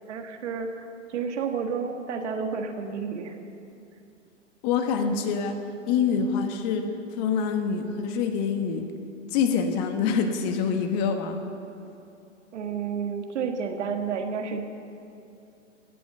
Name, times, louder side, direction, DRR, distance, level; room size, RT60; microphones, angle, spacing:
voice 1, 0.1-3.4 12.5-14.6, right 6 dB, 65° right, 5 dB, 1.7 m, -31 dB
voice 2, 4.6-5.6 5.9-6.9 7.1-8.9 9.3-11.4, left 6 dB, 35° left, 6 dB, 1.3 m, -25 dB
17.0 x 8.4 x 6.8 m, 2.7 s
hypercardioid pair, 120°, 38 cm